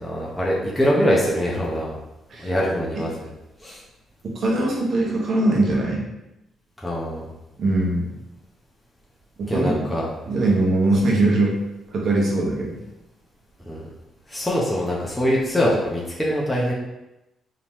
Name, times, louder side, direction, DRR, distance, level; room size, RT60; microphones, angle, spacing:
voice 1, 0.0-1.9 2.4-3.3 3.6-3.8 6.8-7.3 9.5-10.1 13.7-13.8 14.3-16.7, equal, 10° left, -5 dB, 0.8 m, -23 dB
voice 2, 4.3-6.0 7.6-8.1 9.4-9.7 10.3-11.6 11.9-12.8, right 2 dB, 55° right, -2 dB, 1.0 m, -21 dB
3.7 x 2.9 x 3.0 m, 0.93 s
cardioid pair, 90°, 0 cm